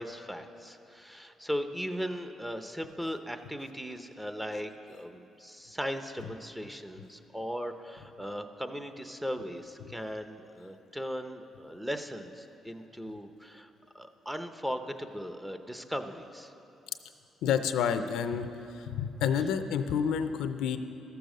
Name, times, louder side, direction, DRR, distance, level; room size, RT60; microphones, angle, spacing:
voice 1, 0.0-13.7 13.9-16.5, equal, 5° right, 8 dB, 0.7 m, -38 dB
voice 2, 17.4-20.8, left 7 dB, 85° left, 10 dB, 0.5 m, -29 dB
13.5 x 6.9 x 6.4 m, 3.0 s
cardioid pair, 90°, 0 cm